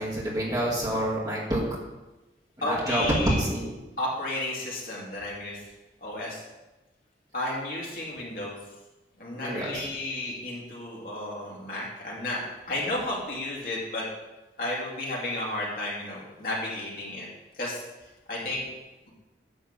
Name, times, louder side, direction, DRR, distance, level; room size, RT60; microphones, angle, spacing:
voice 1, 0.0-1.6 2.6-3.7 9.4-9.8, right 1 dB, 20° right, -5 dB, 2.0 m, -27 dB
voice 2, 2.6-3.4 4.0-5.6 6.0-6.4 7.3-8.6 9.2-12.4 12.7-14.1 14.6-17.3 17.6-17.8 18.3-18.8, left 1 dB, 50° left, -4 dB, 2.4 m, -32 dB
10.0 x 3.7 x 7.4 m, 1.1 s
head